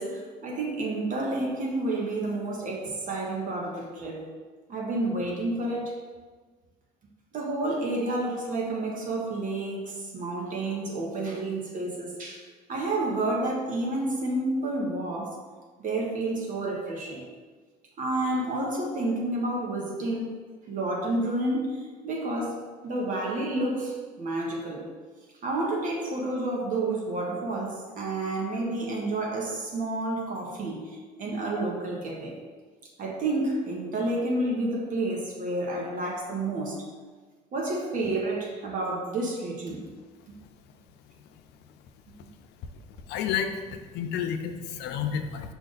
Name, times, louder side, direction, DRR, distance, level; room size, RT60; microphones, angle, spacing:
voice 1, 0.0-4.3 4.7-5.9 7.3-12.4 12.7-15.3 15.8-17.3 18.0-20.4 20.7-24.9 25.4-32.4 33.0-36.8 37.5-39.8, right 2 dB, 50° right, -1 dB, 0.9 m, -30 dB
voice 2, 40.9-41.8 43.1-45.5, left 8 dB, 85° left, 7 dB, 0.5 m, -32 dB
5.2 x 2.4 x 3.9 m, 1.4 s
cardioid pair, 110°, 17 cm